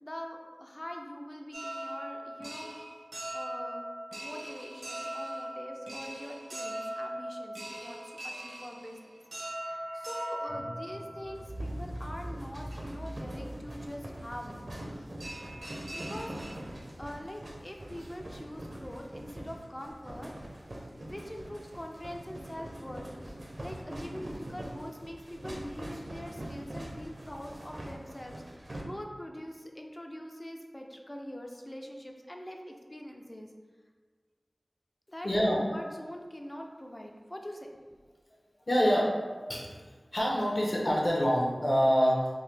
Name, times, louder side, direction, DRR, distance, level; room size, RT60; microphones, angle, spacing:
voice 1, 0.0-2.8 3.3-3.9 4.2-9.0 9.9-14.6 14.9-15.1 15.9-16.3 17.0-20.3 21.0-33.5 35.1-37.7, equal, 25° left, 2 dB, 0.5 m, -43 dB
sound 1, 1.5-11.6 12.3-12.4 12.7-12.8 14.8-14.9 15.2-16.9 17.3-17.4 17.7-18.0, right 1 dB, 85° right, 1.0 m, -40 dB
sound 2, 8.8-16.9 17.2-17.3, right 1 dB, 80° left, 1.1 m, -45 dB
sound 3, 11.4-28.8, right 1 dB, 60° right, 0.6 m, -44 dB
voice 2, 35.2-35.6 38.7-39.1 39.5-39.6 40.1-42.3, equal, 55° left, -3 dB, 0.9 m, -25 dB
3.8 x 2.7 x 3.3 m, 1.5 s
wide cardioid pair, 50°, 0 cm